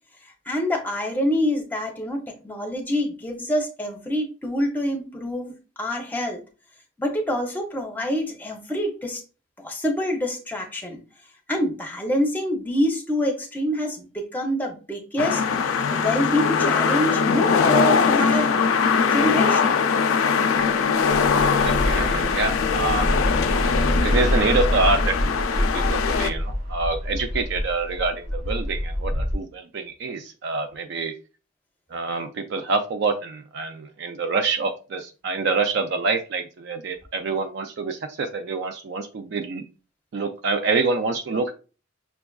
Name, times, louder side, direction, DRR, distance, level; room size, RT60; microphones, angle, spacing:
voice 1, 0.2-6.4 7.0-9.2 9.6-11.0 11.5-15.4 15.9-18.5 19.1-19.8, equal, 10° left, 2 dB, 0.6 m, -26 dB
sound 1, 15.2-26.3, left 5 dB, 85° left, 0.4 m, -21 dB
Bus / Traffic noise roadway noise, 20.6-29.3, equal, 80° right, 1.1 m, -26 dB
voice 2, 21.3-23.1 24.0-25.2 25.5-31.1 31.9-39.6 40.1-41.5, right 3 dB, 55° right, 7 dB, 0.3 m, -26 dB
6.0 x 2.3 x 2.3 m, 0.34 s
head